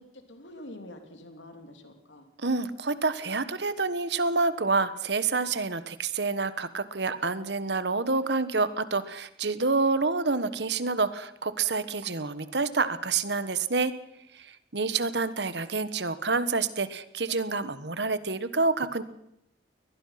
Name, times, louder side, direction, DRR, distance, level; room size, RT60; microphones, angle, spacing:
voice 1, 0.0-2.3, left 1 dB, 80° left, 5 dB, 3.1 m, -47 dB
voice 2, 2.4-13.9 14.3-19.0, right 3 dB, 65° right, 13 dB, 1.4 m, -28 dB
22.5 x 19.5 x 5.9 m, 0.81 s
head